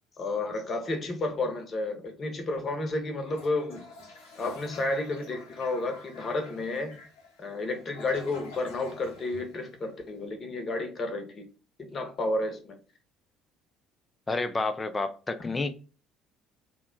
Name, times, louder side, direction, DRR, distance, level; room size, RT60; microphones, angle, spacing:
voice 1, 0.2-3.8 4.4-6.9 7.4-11.4 11.8-12.8 15.4-15.5, left 2 dB, 40° left, 0.9 m, -31 dB
Toilet flush, 3.2-10.2, left 3 dB, 75° left, 0.8 m, -49 dB
voice 2, 14.3-15.7, left 3 dB, 25° left, 0.5 m, -30 dB
2.8 x 2.2 x 3.7 m
hypercardioid pair, 55°, 0 cm